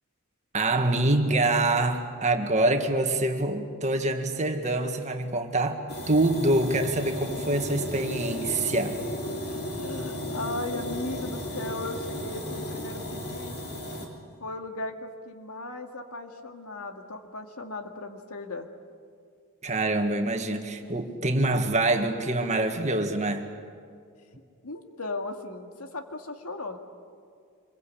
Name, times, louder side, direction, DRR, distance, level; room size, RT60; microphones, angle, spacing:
voice 1, 0.5-9.0 19.6-23.5, right 2 dB, 35° right, 5 dB, 1.9 m, -25 dB
sound 1, 5.9-14.1, equal, 45° left, 3.7 m, -34 dB
voice 2, 9.5-13.6 14.4-18.7 20.8-20.9 24.6-26.8, left 2 dB, 85° left, 5 dB, 2.1 m, -37 dB
25.5 x 22.0 x 8.6 m, 2.3 s
head